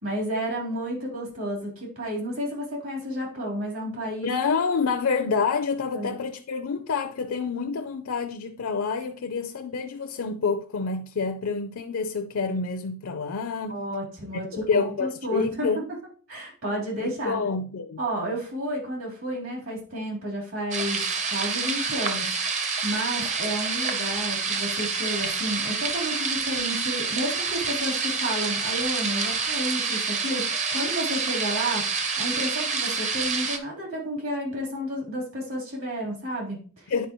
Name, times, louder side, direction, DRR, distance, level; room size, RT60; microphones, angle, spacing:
voice 1, 0.0-4.3 5.9-6.1 13.7-15.7 16.3-17.4 18.0-36.9, equal, 70° right, 3.5 m, -31 dB
voice 2, 4.2-13.8 14.5-15.8 17.0-18.0 36.9-37.1, left 5 dB, 70° left, 0.5 m, -28 dB
sound 1, 20.7-33.6, right 5 dB, 35° right, 0.7 m, -28 dB
10.0 x 4.6 x 3.0 m
head